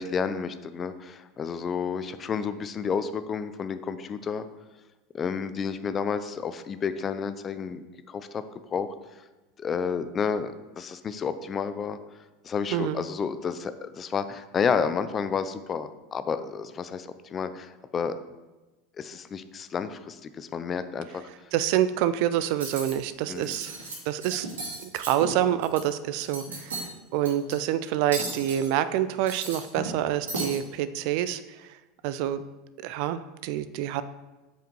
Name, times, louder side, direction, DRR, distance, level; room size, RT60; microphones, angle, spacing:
voice 1, 0.0-4.5 5.1-8.4 8.7-8.9 9.6-12.0 12.4-18.2 19.0-21.2 23.3-23.6, left 6 dB, 30° left, 12 dB, 0.6 m, -31 dB
voice 2, 12.7-13.0 21.5-23.7 24.1-24.5 24.8-31.7 32.0-32.4 32.8-34.0, right 11 dB, 65° right, 14 dB, 0.4 m, -27 dB
Cutlery silverware, 22.5-22.9 23.3-23.9 24.2-25.8 26.2-26.9 27.2-27.5 28.1-28.7 29.1-30.0 30.3-30.6, right 2 dB, 85° right, 2.4 m, -34 dB
7.7 x 5.1 x 4.6 m, 1.1 s
hypercardioid pair, 85°, 0 cm